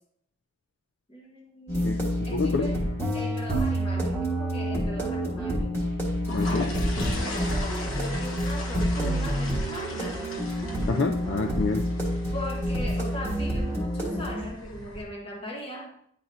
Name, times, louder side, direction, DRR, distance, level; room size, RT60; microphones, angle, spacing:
voice 1, 1.1-2.8 3.1-5.8 6.4-10.3 12.3-15.9, equal, 30° left, -2 dB, 1.2 m, -39 dB
sound 1, 1.7-14.4, equal, 10° left, 1.5 m, -28 dB
voice 2, 1.8-2.7 6.3-6.8 10.8-11.9, left 4 dB, 60° left, 5 dB, 0.4 m, -28 dB
sound 2, 5.9-15.0, left 1 dB, 90° left, 1.2 m, -38 dB
10.0 x 4.0 x 2.7 m, 0.68 s
head